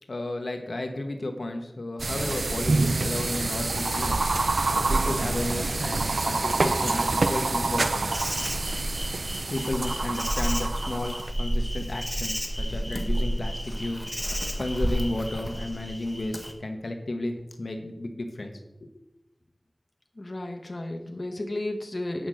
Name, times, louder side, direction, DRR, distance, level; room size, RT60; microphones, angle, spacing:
voice 1, 0.1-4.2 4.9-8.1 9.5-14.0 14.6-18.5 18.8-18.9, left 1 dB, 80° left, 4 dB, 1.2 m, -33 dB
sound 1, 2.0-11.3, right 3 dB, 85° right, 0.5 m, -27 dB
Insect, 8.1-16.5, equal, ahead, 1.5 m, -31 dB
voice 2, 20.1-22.3, left 1 dB, 50° left, 3 dB, 1.1 m, -34 dB
9.1 x 6.0 x 6.4 m, 0.91 s
wide cardioid pair, 50°, 0 cm